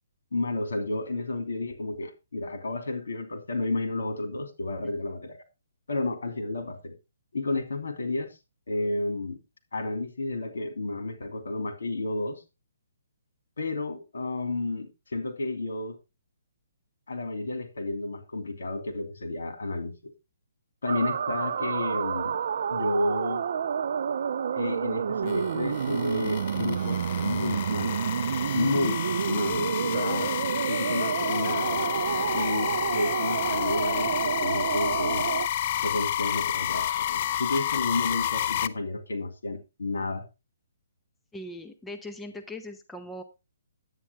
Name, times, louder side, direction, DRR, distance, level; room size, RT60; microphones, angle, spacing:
voice 1, 0.3-5.4 5.9-6.9 7.3-8.3 8.7-9.4 9.7-12.4 13.6-16.0 17.1-20.1 20.8-22.4 22.7-23.5 24.5-28.1 28.5-30.3 30.7-31.9 32.3-35.3 35.8-40.3, left 2 dB, 80° left, 2.8 m, -31 dB
sound 1, 20.9-35.5, right 7 dB, 60° right, 0.4 m, -29 dB
sound 2, 25.3-38.7, left 11 dB, 40° left, 0.5 m, -30 dB
voice 2, 41.3-43.2, left 1 dB, 5° left, 0.7 m, -40 dB
9.7 x 9.0 x 3.5 m
hypercardioid pair, 155°, 0 cm